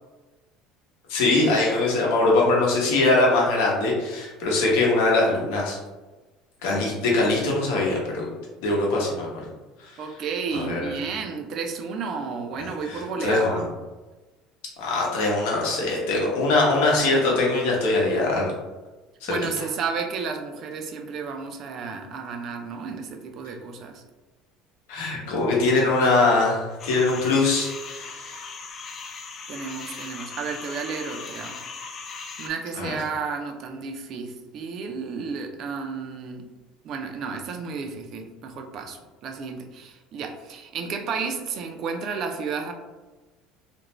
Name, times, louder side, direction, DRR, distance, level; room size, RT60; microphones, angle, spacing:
voice 1, 1.1-5.8 6.6-8.3 8.6-9.3 9.8-10.0 10.5-10.9 12.6-13.6 14.8-18.5 19.2-19.4 24.9-28.4 32.7-32.9, left 2 dB, 85° left, -3 dB, 0.8 m, -22 dB
voice 2, 10.0-13.6 19.3-24.0 29.5-31.6 32.4-36.5 36.8-42.7, right 5 dB, 45° right, 5 dB, 0.4 m, -32 dB
sound 1, 26.8-32.5, left 5 dB, 35° left, 0.3 m, -38 dB
2.5 x 2.1 x 3.0 m, 1.2 s
cardioid pair, 140°, 0 cm